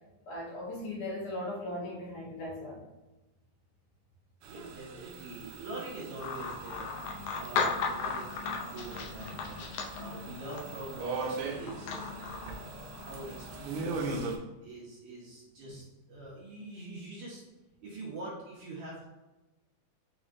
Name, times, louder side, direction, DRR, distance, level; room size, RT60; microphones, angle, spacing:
voice 1, 0.2-2.8 15.6-15.7 16.1-16.3, left 1 dB, 65° left, -4 dB, 2.1 m, -38 dB
sound 1, 4.4-14.4, right 4 dB, 90° right, 2.2 m, -41 dB
voice 2, 4.5-6.9 7.3-9.6 10.0-12.6 13.0-14.3 14.6-17.4 17.8-19.1, right 2 dB, 60° right, -6 dB, 1.7 m, -44 dB
sound 2, 6.2-14.1, left 5 dB, 85° left, 1.3 m, -37 dB
6.0 x 3.1 x 2.5 m, 1.1 s
omnidirectional pair, 3.5 m